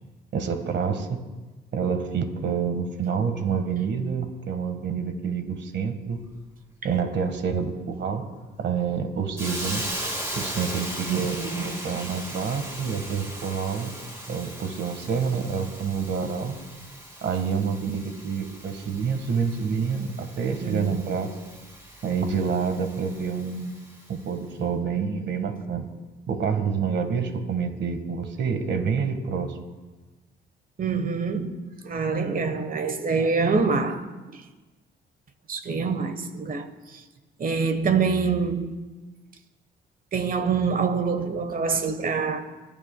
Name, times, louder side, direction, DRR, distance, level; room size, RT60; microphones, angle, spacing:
voice 1, 0.3-1.2 1.7-6.2 6.8-8.2 8.6-9.8 10.3-13.9 14.3-16.6 17.2-21.3 22.0-23.7 24.1-25.8 26.3-29.6, right 6 dB, 60° right, 1.5 m, -27 dB
Hiss, 9.4-24.1, right 1 dB, 15° right, 4.8 m, -38 dB
voice 2, 11.1-11.8 20.6-21.1 30.8-31.5 31.8-34.4 35.5-37.0 37.4-38.7 40.1-42.4, right 5 dB, 45° right, 1.2 m, -26 dB
27.5 x 11.0 x 2.2 m
cardioid pair, 90°, 20 cm